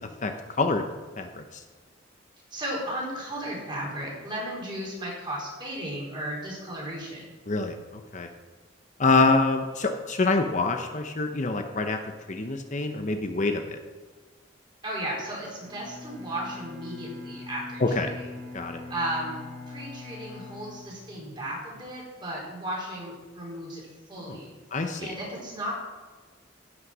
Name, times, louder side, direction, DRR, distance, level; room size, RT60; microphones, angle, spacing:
voice 1, 2.5-7.3 14.8-18.3 18.9-19.4 19.7-23.8 24.1-24.5 25.0-25.7, right 1 dB, 25° right, -4 dB, 4.4 m, -35 dB
voice 2, 9.0-12.0 12.3-13.8 18.0-18.1 18.5-18.8 24.3-24.4 24.7-25.1, left 3 dB, 40° left, 5 dB, 0.8 m, -25 dB
Bowed string instrument, 15.6-21.6, left 3 dB, ahead, 2.7 m, -43 dB
15.0 x 6.4 x 6.2 m, 1.3 s
head